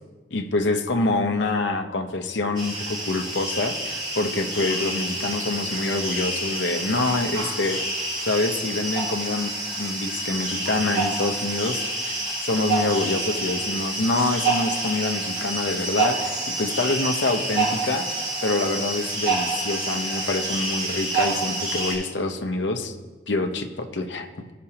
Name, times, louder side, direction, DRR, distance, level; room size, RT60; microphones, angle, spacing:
voice 1, 0.3-7.8 8.2-9.5 9.8-12.1 12.5-18.1 18.4-22.9 23.3-24.3, left 2 dB, 65° left, 5 dB, 0.7 m, -26 dB
sound 1, 2.5-21.9, right 2 dB, 25° right, 3.1 m, -28 dB
15.0 x 6.0 x 2.9 m, 1.3 s
head